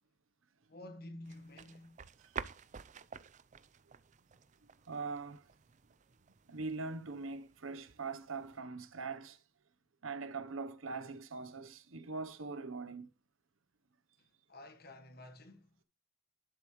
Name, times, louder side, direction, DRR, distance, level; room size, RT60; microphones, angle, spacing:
voice 1, 0.7-2.0 14.2-15.8, left 1 dB, 50° left, 1.4 m, -51 dB
sound 1, 1.2-8.6, right 6 dB, 40° right, 0.4 m, -51 dB
voice 2, 4.6-5.5 6.5-9.4 10.0-13.1, right 4 dB, 90° right, 0.9 m, -42 dB
11.5 x 7.1 x 3.1 m
head